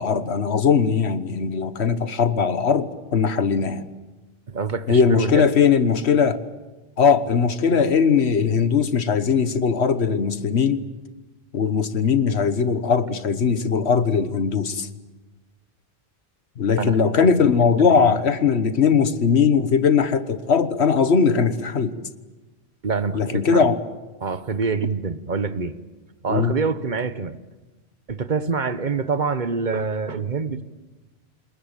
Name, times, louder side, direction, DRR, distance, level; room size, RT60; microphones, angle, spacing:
voice 1, 0.0-3.9 4.9-6.4 7.0-10.8 11.5-14.9 16.6-22.0 23.1-23.8 26.3-26.5, left 6 dB, 85° left, 12 dB, 1.5 m, -20 dB
voice 2, 4.5-5.5 16.8-17.3 17.8-18.2 22.8-23.7 24.2-25.8 26.2-27.4 28.1-30.6, right 5 dB, 45° right, 13 dB, 1.2 m, -26 dB
28.0 x 20.5 x 9.0 m, 1.2 s
omnidirectional pair, 1.1 m